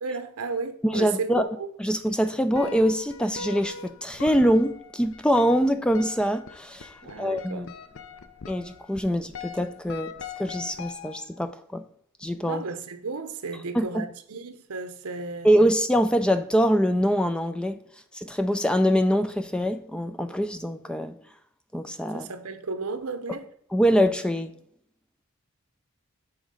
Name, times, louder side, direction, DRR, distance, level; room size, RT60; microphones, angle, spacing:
voice 1, 0.0-1.7 7.0-7.7 9.1-9.2 12.5-15.5 22.1-23.5, right 4 dB, 80° right, 0.8 m, -34 dB
voice 2, 0.8-1.5 1.8-7.7 8.5-10.1 10.4-11.8 12.2-12.6 13.7-14.1 15.4-17.8 18.1-21.1 21.7-22.3 23.7-24.5, equal, 5° left, 0.3 m, -24 dB
sound 1, 2.5-11.5, left 4 dB, 65° left, 0.6 m, -41 dB
7.2 x 3.7 x 5.1 m
head